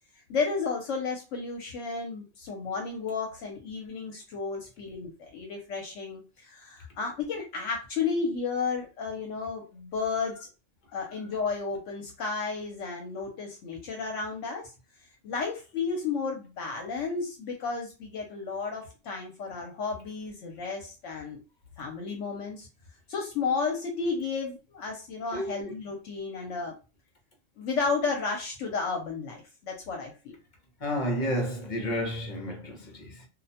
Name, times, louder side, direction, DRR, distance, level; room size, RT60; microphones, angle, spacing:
voice 1, 0.3-10.5 10.9-14.7 15.2-21.4 21.8-22.7 23.1-26.8 27.6-30.3, left 4 dB, 75° left, 0.9 m, -32 dB
voice 2, 25.3-25.7 30.8-33.3, equal, 45° left, 0.8 m, -31 dB
2.5 x 2.1 x 2.7 m
omnidirectional pair, 1.3 m